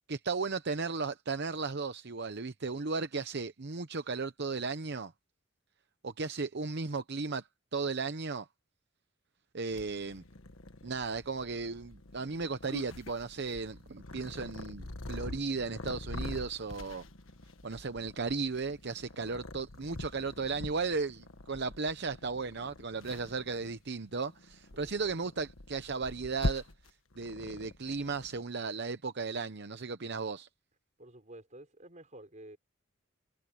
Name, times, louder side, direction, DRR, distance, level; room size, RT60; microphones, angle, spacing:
voice 1, 0.1-5.1 6.0-8.5 9.5-10.2 10.8-17.0 17.6-26.7 27.2-30.5, right 4 dB, 55° right, 0.8 m, -35 dB
Purr, 9.7-28.4, left 2 dB, 80° left, 1.5 m, -44 dB
voice 2, 24.7-25.1 31.0-32.6, right 1 dB, 35° right, 5.5 m, -51 dB
head